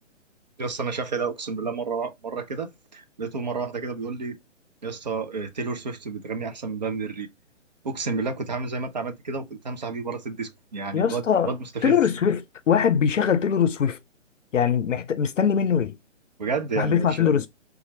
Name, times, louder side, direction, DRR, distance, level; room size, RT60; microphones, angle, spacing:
voice 1, 0.6-4.4 4.8-7.3 7.8-12.0 16.4-17.2, right 4 dB, 35° right, 0.5 m, -30 dB
voice 2, 10.9-11.5 11.8-14.0 14.5-16.0 16.8-17.5, left 7 dB, 75° left, 0.5 m, -22 dB
4.2 x 2.4 x 2.6 m
figure-of-eight pair, 135°, 38 cm